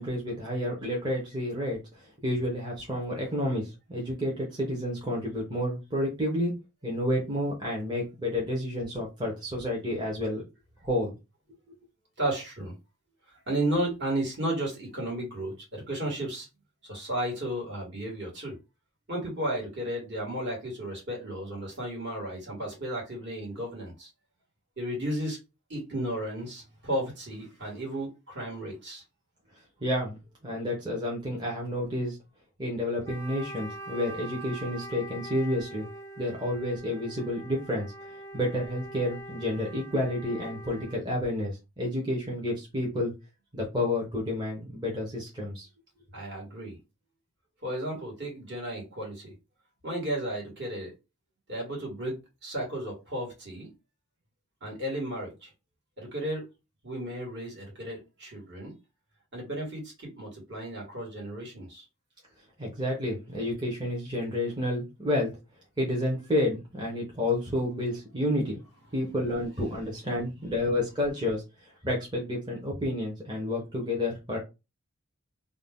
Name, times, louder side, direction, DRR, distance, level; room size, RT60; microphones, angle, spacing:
voice 1, 0.0-1.8 2.2-6.5 6.8-10.4 10.8-11.1 29.8-30.2 30.4-32.2 32.6-35.8 36.2-37.9 38.3-43.1 43.5-45.7 62.6-65.3 65.8-68.6 68.9-71.4 71.8-74.4, left 1 dB, 20° right, 0.7 m, -30 dB
voice 2, 12.2-12.7 13.5-16.5 16.8-18.5 19.1-24.1 24.8-25.4 25.7-29.0 46.1-46.8 47.6-49.3 49.8-50.9 51.5-52.1 52.4-53.7 54.6-55.5 56.0-56.4 56.8-58.7 59.3-61.8, right 1 dB, 55° right, 1.5 m, -33 dB
Wind instrument woodwind instrument, 33.0-41.1, right 1 dB, 15° left, 0.5 m, -43 dB
2.6 x 2.1 x 3.5 m
head